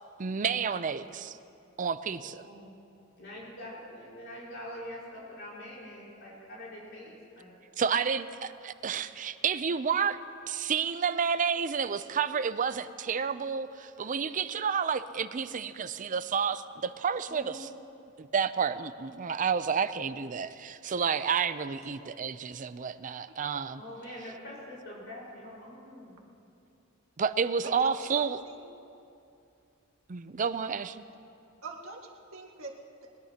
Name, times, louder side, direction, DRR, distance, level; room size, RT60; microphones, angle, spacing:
voice 1, 0.2-1.4 1.8-2.4 7.8-10.2 10.5-17.7 18.2-23.8 27.2-28.4 30.1-31.0, right 6 dB, 40° right, 13 dB, 0.5 m, -30 dB
voice 2, 2.2-2.8 3.2-7.5 17.3-17.6 23.7-26.2, left 1 dB, 60° left, -6 dB, 4.7 m, -44 dB
voice 3, 27.6-28.8 31.6-33.1, right 3 dB, 85° right, 0 dB, 1.8 m, -44 dB
21.0 x 20.5 x 2.9 m, 2.6 s
head